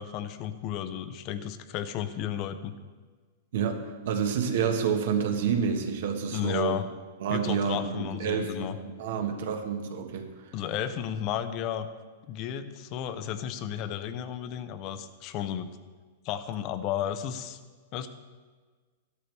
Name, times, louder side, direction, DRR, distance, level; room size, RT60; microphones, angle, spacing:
voice 1, 0.0-2.8 6.3-6.8 7.3-8.7 10.5-11.9 12.3-15.7 16.2-17.6 17.9-18.1, left 10 dB, 35° left, 11 dB, 0.7 m, -33 dB
voice 2, 3.5-6.8 7.2-10.5, right 7 dB, 65° right, 5 dB, 1.5 m, -29 dB
13.5 x 12.5 x 3.4 m, 1.5 s
supercardioid pair, 165°, 0 cm